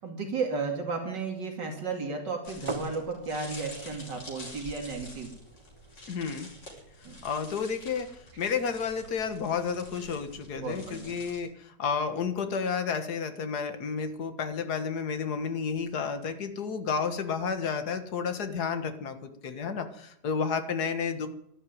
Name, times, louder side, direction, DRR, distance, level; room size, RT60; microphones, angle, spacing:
voice 1, 0.0-5.3 7.0-7.2 10.5-11.2, right 4 dB, 80° right, 3 dB, 3.1 m, -34 dB
sound 1, 2.4-11.4, left 1 dB, 85° left, 6.1 m, -48 dB
sound 2, 2.7-8.3, right 3 dB, 35° right, 0.5 m, -45 dB
voice 2, 6.1-6.5 7.2-21.3, left 6 dB, 65° left, 8 dB, 2.0 m, -31 dB
12.0 x 12.0 x 9.4 m, 0.75 s
omnidirectional pair, 1.9 m